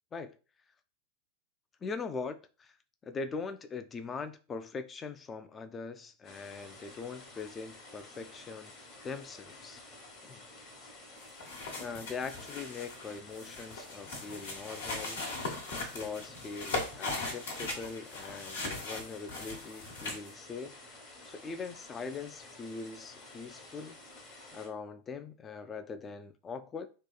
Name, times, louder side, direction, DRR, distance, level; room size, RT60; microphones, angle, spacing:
voice 1, 1.8-2.8 3.0-8.7 9.0-9.8 10.2-10.4 11.8-15.2 15.7-21.0 21.3-24.0 24.5-26.9, left 4 dB, 25° left, 0.3 m, -41 dB
sound 1, 6.2-24.7, left 2 dB, 40° left, 1.0 m, -52 dB
sound 2, 11.2-20.3, left 3 dB, 70° left, 0.9 m, -39 dB
2.8 x 2.2 x 2.3 m
figure-of-eight pair, 95°, 0 cm